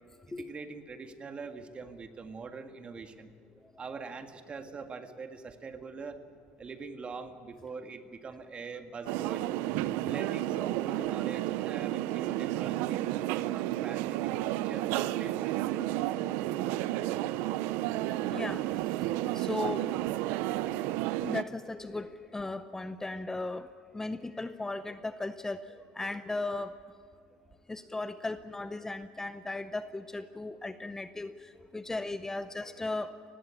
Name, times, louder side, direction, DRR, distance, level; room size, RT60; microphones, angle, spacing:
voice 1, 0.3-3.3 3.8-6.2 6.6-9.5 10.0-15.5, right 4 dB, 30° right, 7 dB, 1.9 m, -43 dB
sound 1, 9.1-21.4, right 15 dB, 70° right, 0.6 m, -31 dB
voice 2, 18.3-18.7 19.2-19.9 21.2-23.7 23.9-26.7 27.7-33.2, left 2 dB, 10° left, 12 dB, 0.7 m, -37 dB
18.5 x 16.5 x 9.7 m, 2.3 s
supercardioid pair, 90°, 4 cm